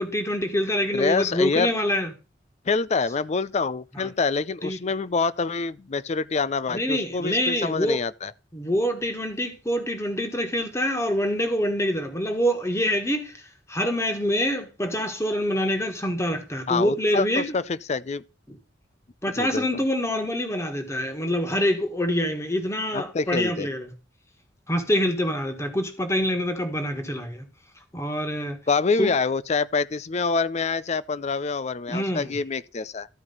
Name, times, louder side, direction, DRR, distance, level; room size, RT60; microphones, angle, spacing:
voice 1, 0.0-2.1 4.6-4.8 6.7-8.0 8.5-13.4 13.7-17.4 18.5-18.6 19.2-23.9 24.7-27.5 27.9-28.6 29.0-29.1 31.9-32.3, equal, 15° left, 1.6 m, -25 dB
voice 2, 0.9-1.7 2.7-8.3 16.7-18.2 19.4-19.7 22.9-23.7 28.7-33.1, left 4 dB, 35° left, 0.4 m, -26 dB
13.0 x 4.9 x 5.3 m
head